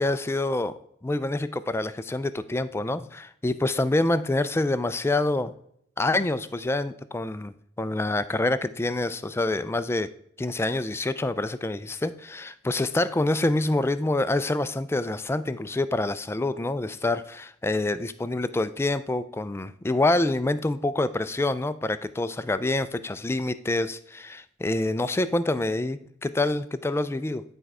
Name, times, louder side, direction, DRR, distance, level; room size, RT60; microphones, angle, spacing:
voice 1, 0.0-5.5 6.0-10.1 10.4-27.4, left 2 dB, 10° left, 13 dB, 0.3 m, -26 dB
10.0 x 4.5 x 4.8 m, 0.70 s
head